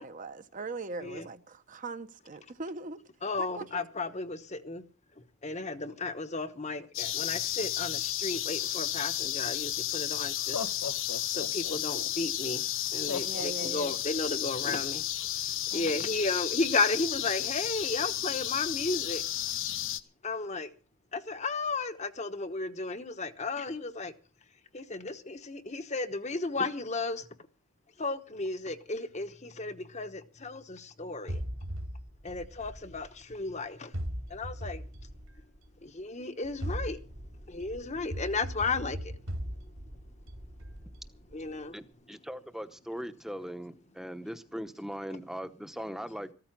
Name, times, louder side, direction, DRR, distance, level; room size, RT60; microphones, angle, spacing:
voice 1, 0.0-3.0 3.4-3.8 13.2-14.0 15.7-16.2, right 3 dB, 35° right, 0.8 m, -40 dB
voice 2, 3.2-4.8 5.4-10.7 11.3-12.6 12.9-15.0 15.7-19.2 20.2-20.7 21.1-24.1 24.7-27.3 28.0-31.4 32.2-33.9 34.3-34.8 35.8-37.0 37.5-39.2 41.3-41.8, left 3 dB, 30° left, 1.0 m, -34 dB
sound 1, 6.9-20.0, left 12 dB, 60° left, 0.9 m, -33 dB
Laughter, 9.6-9.7 10.4-12.1 13.1-14.3, left 5 dB, 80° left, 1.0 m, -38 dB
sound 2, 31.3-33.4 33.9-35.8 36.4-41.5, equal, 65° right, 2.5 m, -39 dB
voice 3, 41.7-46.3, equal, ahead, 0.9 m, -40 dB
14.5 x 13.5 x 6.0 m
head